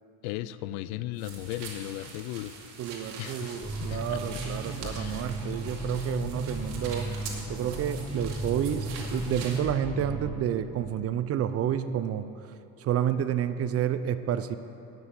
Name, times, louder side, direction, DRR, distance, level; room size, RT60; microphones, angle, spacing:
voice 1, 0.2-2.6 3.2-4.2 4.8-5.3, left 14 dB, 80° left, 15 dB, 0.5 m, -36 dB
sound 1, 1.2-9.6, right 4 dB, 65° right, 2.0 m, -44 dB
voice 2, 2.8-7.1 7.5-12.3 12.8-14.6, right 9 dB, 35° right, 12 dB, 0.4 m, -30 dB
sound 2, 3.6-10.3, right 1 dB, 5° left, 1.7 m, -35 dB
9.4 x 6.1 x 8.2 m, 2.9 s
supercardioid pair, 95°, 43 cm